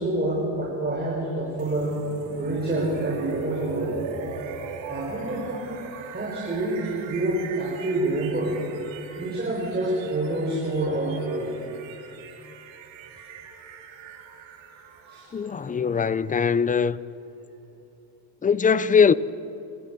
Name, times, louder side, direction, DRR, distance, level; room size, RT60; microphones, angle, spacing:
voice 1, 0.0-2.0 2.3-3.9 4.9-5.6 6.1-8.6 9.2-11.5 15.1-15.3, right 1 dB, 20° right, 6.8 m, -27 dB
sound 1, 1.6-17.5, right 5 dB, 70° right, 3.4 m, -40 dB
voice 2, 15.3-17.0 18.4-19.1, left 6 dB, 15° left, 0.6 m, -21 dB
28.5 x 14.5 x 8.2 m
supercardioid pair, 80°, 47 cm